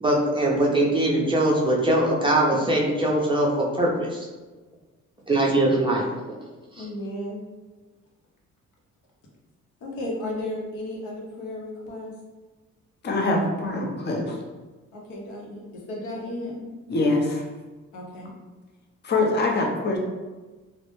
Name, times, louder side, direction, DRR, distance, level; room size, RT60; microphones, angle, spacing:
voice 1, 0.0-4.2 5.3-6.1, right 1 dB, 15° right, -3 dB, 0.4 m, -21 dB
voice 2, 6.7-7.4 9.8-12.1 14.9-16.6 17.9-18.3, left 1 dB, 75° left, -2 dB, 0.7 m, -34 dB
voice 3, 13.0-14.4 16.9-17.4 19.0-20.0, left 2 dB, 35° left, 0 dB, 0.5 m, -24 dB
2.0 x 2.0 x 3.0 m, 1.2 s
cardioid pair, 90°, 30 cm